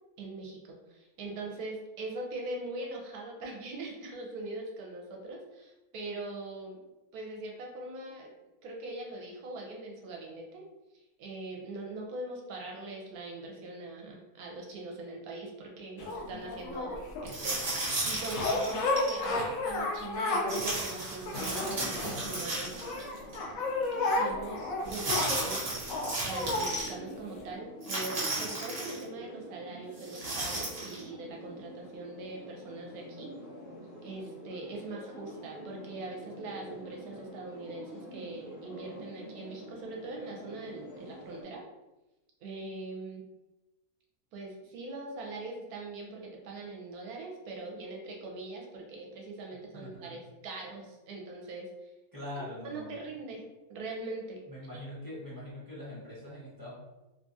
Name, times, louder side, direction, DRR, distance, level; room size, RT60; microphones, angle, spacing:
voice 1, 0.2-6.8 7.1-8.3 8.6-10.7 10.9-22.9 24.1-33.3 34.0-41.6 42.4-43.2 44.3-51.9 52.4-54.4 54.7-54.8, right 2 dB, 80° right, -1 dB, 1.1 m, -42 dB
sound 1, 16.0-17.4 18.3-20.6 21.0-22.4 22.8-26.7 27.4-27.5, left 2 dB, 70° left, 1.0 m, -32 dB
sound 2, 17.3-19.2 20.5-23.0 23.3-23.4 24.9-26.9 27.8-29.0 30.0-31.0, right 2 dB, 50° right, 1.0 m, -34 dB
sound 3, 21.7-41.4, equal, 40° left, 1.0 m, -47 dB
voice 2, 49.7-50.2 52.1-53.0 54.4-56.7, left 1 dB, 15° left, -9 dB, 0.8 m, -43 dB
3.1 x 2.3 x 2.6 m, 1.0 s
omnidirectional pair, 1.6 m